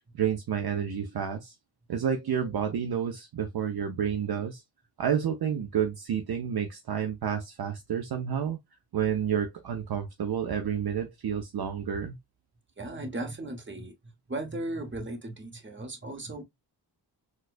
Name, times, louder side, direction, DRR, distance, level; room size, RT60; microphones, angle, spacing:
voice 1, 0.1-1.5 1.9-4.6 5.0-8.6 8.9-12.2, right 8 dB, 55° right, 0.6 m, -30 dB
voice 2, 12.8-16.4, right 2 dB, 25° right, 1.1 m, -37 dB
4.2 x 2.3 x 2.4 m
cardioid pair, 70°, 45 cm